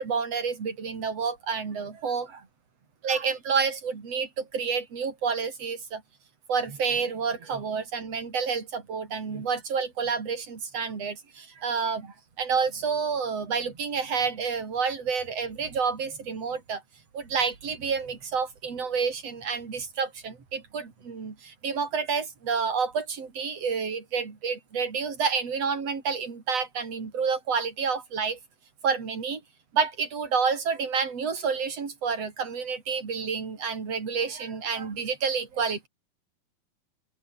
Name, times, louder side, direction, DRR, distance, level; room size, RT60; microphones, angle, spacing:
voice 1, 0.0-2.5 3.0-6.0 6.5-16.8 17.1-28.4 28.8-29.4 29.7-35.9, right 5 dB, 45° right, 4.9 m, -29 dB
open air
omnidirectional pair, 4.3 m